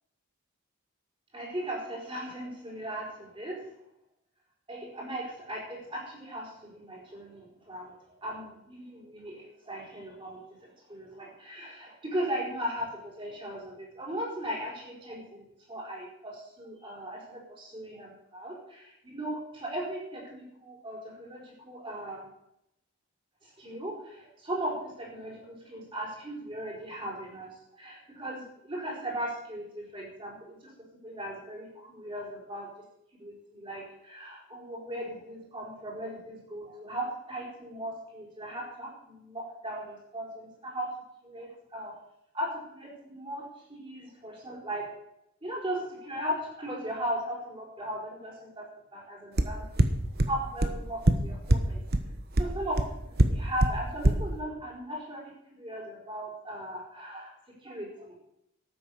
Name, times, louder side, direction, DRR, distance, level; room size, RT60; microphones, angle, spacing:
voice 1, 1.3-3.6 4.7-22.3 23.4-30.7 31.0-32.7 33.2-40.9 41.2-41.9 42.3-44.8 45.4-49.6 50.2-51.8 52.4-52.8 53.3-57.3 57.6-58.2, right 1 dB, 25° right, -2 dB, 4.9 m, -38 dB
sound 1, 49.4-49.5 49.8-49.9 50.2-50.3 50.6-50.7 51.1-51.2 51.5-51.6 51.9-52.0 52.4-52.5 52.8-52.9 53.2-53.3 53.6-53.7 54.0-54.1, right 1 dB, 45° right, 1.1 m, -19 dB
13.0 x 9.4 x 6.7 m, 0.81 s
head